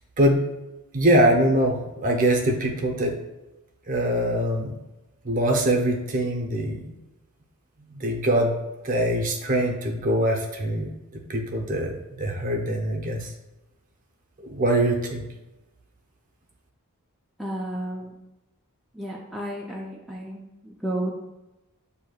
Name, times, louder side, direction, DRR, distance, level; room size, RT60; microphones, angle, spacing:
voice 1, 0.9-3.1 3.9-4.7 5.2-6.8 7.9-8.5 8.8-13.3 14.5-15.2, right 1 dB, 35° right, 1 dB, 0.7 m, -23 dB
voice 2, 17.4-18.2 18.9-21.1, right 1 dB, ahead, -5 dB, 0.4 m, -32 dB
8.0 x 2.7 x 2.3 m, 1.0 s
head